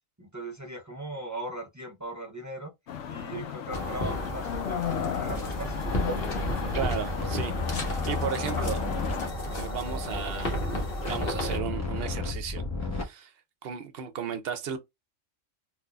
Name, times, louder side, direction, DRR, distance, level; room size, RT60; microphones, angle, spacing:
voice 1, 0.2-2.7 3.1-5.8, right 1 dB, 30° right, 0.3 m, -39 dB
sound 1, 2.9-9.3, left 9 dB, 70° left, 0.9 m, -35 dB
sound 2, 3.7-11.6, left 1 dB, 50° left, 1.3 m, -33 dB
sound 3, 5.3-13.0, left 2 dB, 15° left, 0.8 m, -34 dB
voice 2, 6.7-8.8 9.5-10.7 11.1-12.6 12.9-13.3 13.6-14.8, right 8 dB, 60° right, 0.7 m, -35 dB
3.7 x 2.6 x 2.2 m
omnidirectional pair, 1.3 m